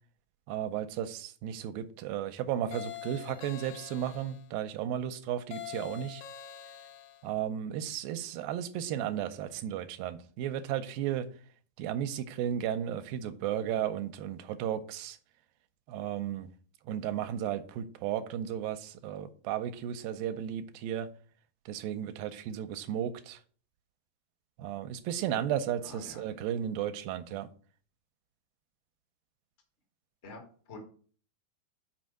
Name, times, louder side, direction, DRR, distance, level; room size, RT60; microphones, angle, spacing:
voice 1, 0.5-6.2 7.2-11.3 11.8-15.2 15.9-16.5 16.9-21.1 21.7-23.4 24.6-27.5, right 10 dB, 85° right, 2.4 m, -34 dB
sound 1, 2.7-4.5 5.5-7.3, left 11 dB, 90° left, 2.4 m, -44 dB
voice 2, 25.8-26.2 30.2-30.4 30.7-30.8, left 3 dB, 50° left, 0.7 m, -46 dB
5.9 x 4.4 x 6.3 m
omnidirectional pair, 4.1 m